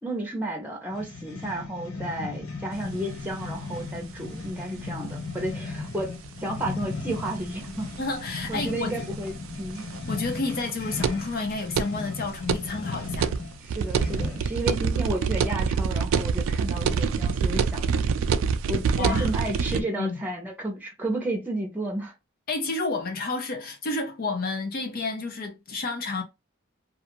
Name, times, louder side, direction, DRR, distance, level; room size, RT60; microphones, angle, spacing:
voice 1, 0.0-7.9 8.5-9.8 13.6-17.9 18.7-22.1, right 1 dB, 10° right, 0.7 m, -32 dB
sound 1, 0.9-14.6, left 3 dB, 85° left, 0.7 m, -36 dB
sound 2, 2.8-2.9 3.1-3.2 3.4-3.5 4.9-5.0 5.5-5.6 6.0-6.1 6.2-6.3 6.5-6.6 7.1-12.6 12.9-19.8, right 6 dB, 70° right, 0.3 m, -26 dB
voice 2, 8.0-9.0 10.1-13.3 19.0-19.3 19.7-20.2 22.5-26.2, left 3 dB, 45° left, 0.5 m, -30 dB
2.4 x 2.4 x 2.9 m
head